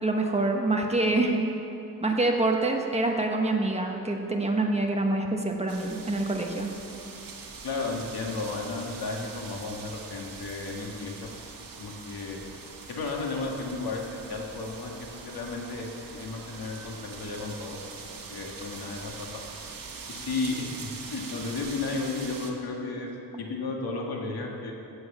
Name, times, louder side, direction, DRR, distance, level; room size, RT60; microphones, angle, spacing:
voice 1, 0.0-1.4 2.0-6.7, right 2 dB, 15° right, 1 dB, 1.2 m, -26 dB
sound 1, 5.7-22.5, right 4 dB, 65° right, 1.6 m, -43 dB
voice 2, 7.6-11.3 11.8-12.4 12.9-14.0 14.3-19.4 20.1-23.1 23.4-24.7, left 3 dB, 85° left, 0 dB, 2.1 m, -34 dB
15.5 x 8.0 x 7.3 m, 2.8 s
wide cardioid pair, 140°, 36 cm